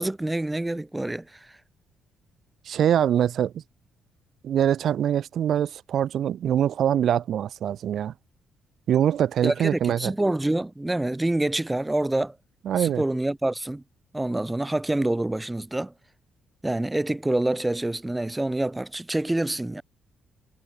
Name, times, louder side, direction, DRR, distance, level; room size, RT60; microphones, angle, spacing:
voice 1, 0.0-1.6 9.4-12.4 12.8-13.8 14.1-15.9 16.6-19.8, right 1 dB, 10° right, 2.3 m, -26 dB
voice 2, 2.7-3.5 4.4-8.1 8.9-10.1 12.7-13.0, right 10 dB, 65° right, 3.5 m, -23 dB
cardioid pair, 90°, 0 cm